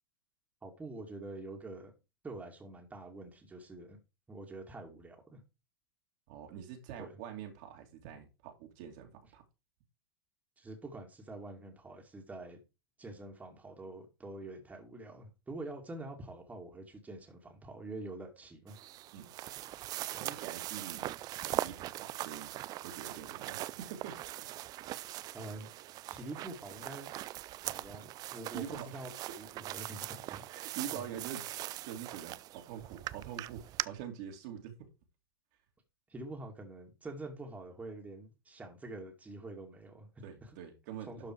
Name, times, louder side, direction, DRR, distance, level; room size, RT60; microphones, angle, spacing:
voice 1, 0.6-1.9 2.2-4.0 4.3-5.4 7.0-7.1 10.6-12.6 13.0-18.8 20.1-20.3 25.3-25.7 26.1-27.2 27.6-30.4 30.9-31.0 36.1-40.5 41.1-41.3, right 2 dB, 10° right, 2.4 m, -46 dB
voice 2, 6.3-9.4 19.1-19.3 20.2-21.1 21.5-22.5 22.8-24.3 28.5-29.0 30.5-31.4 31.8-34.9 40.2-41.2, right 9 dB, 50° right, 2.7 m, -45 dB
sound 1, 18.7-33.8, right 15 dB, 30° right, 0.4 m, -41 dB
12.0 x 4.9 x 4.7 m
hypercardioid pair, 100°, 12 cm